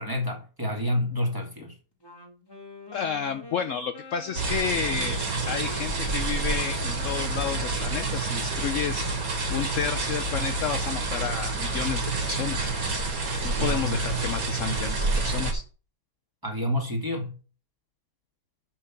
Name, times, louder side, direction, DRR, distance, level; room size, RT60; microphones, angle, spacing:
voice 1, 0.0-1.7 13.6-14.0 16.4-17.4, left 1 dB, 10° right, 1.9 m, -29 dB
Wind instrument woodwind instrument, 2.0-10.3, left 2 dB, 15° left, 1.3 m, -45 dB
voice 2, 2.9-9.1 9.5-12.7 13.4-15.6, left 7 dB, 70° left, 0.7 m, -31 dB
sound 1, 4.4-15.5, right 3 dB, 50° right, 2.2 m, -28 dB
6.1 x 5.9 x 7.0 m
omnidirectional pair, 2.0 m